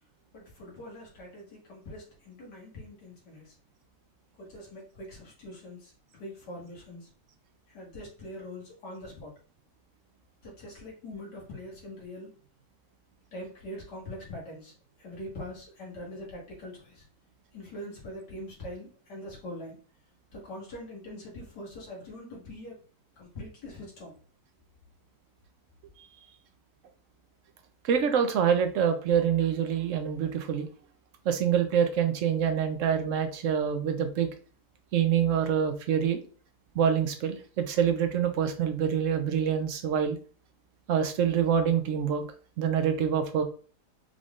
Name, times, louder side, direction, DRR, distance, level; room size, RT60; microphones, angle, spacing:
voice 1, 0.3-3.5 4.4-7.1 7.7-9.3 10.4-12.3 13.3-14.7 15.0-17.0 17.5-19.8 20.3-22.8 23.2-24.1, left 1 dB, 85° left, -3 dB, 2.3 m, -43 dB
voice 2, 27.8-30.7 31.2-34.3 34.9-36.2 36.7-40.2 40.9-42.2 42.6-43.4, right 8 dB, 60° right, 7 dB, 0.9 m, -26 dB
5.1 x 3.6 x 2.4 m, 0.40 s
omnidirectional pair, 1.8 m